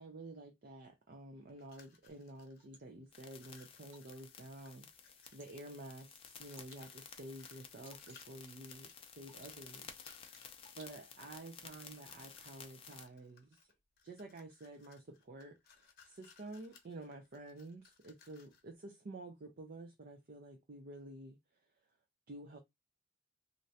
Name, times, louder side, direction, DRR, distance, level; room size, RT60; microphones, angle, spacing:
voice 1, 0.0-10.4 10.8-13.6 14.0-21.4 22.3-22.6, right 2 dB, 50° right, 0.5 m, -51 dB
sound 1, 1.5-2.8 3.1-5.6 6.0-11.1 11.7-12.5 12.8-18.7, left 6 dB, 50° left, 0.9 m, -65 dB
Water / Drip, 2.1-11.5, right 1 dB, 65° right, 1.2 m, -69 dB
sound 2, 3.1-13.1, left 7 dB, 30° left, 0.5 m, -54 dB
3.1 x 2.5 x 2.7 m
head